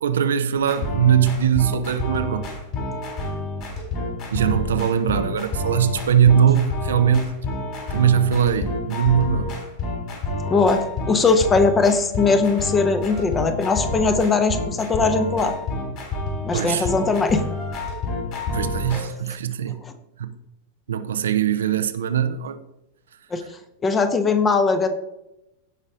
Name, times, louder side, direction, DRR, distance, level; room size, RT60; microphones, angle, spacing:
voice 1, 0.0-2.5 4.3-7.3 7.9-9.5 16.5-16.9 18.5-19.8 20.2-20.3 20.9-22.6, right 8 dB, 65° right, 0.7 m, -20 dB
sound 1, 0.6-19.0, left 2 dB, 40° left, 3.9 m, -29 dB
voice 2, 10.5-15.5 16.4-17.4 19.8-19.9 23.3-23.4 23.8-24.9, left 4 dB, 20° left, 1.1 m, -20 dB
16.0 x 5.4 x 3.7 m
figure-of-eight pair, 90°, 0 cm